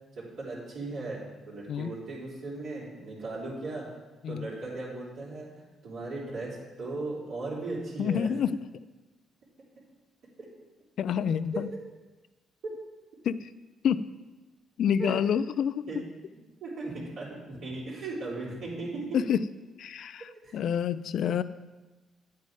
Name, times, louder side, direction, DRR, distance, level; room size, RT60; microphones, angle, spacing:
voice 1, 0.2-3.9 4.3-8.3 10.4-10.5 11.5-11.6 15.0-15.1 15.9-16.0 16.6-19.2 20.4-20.6, right 2 dB, 70° right, -8 dB, 3.8 m, -37 dB
voice 2, 8.0-8.5 11.0-11.7 13.2-13.4 13.8-14.0 14.8-15.9 19.1-19.4 19.8-21.4, left 8 dB, 65° left, 15 dB, 0.4 m, -27 dB
9.5 x 8.5 x 4.8 m, 1.2 s
cardioid pair, 90°, 0 cm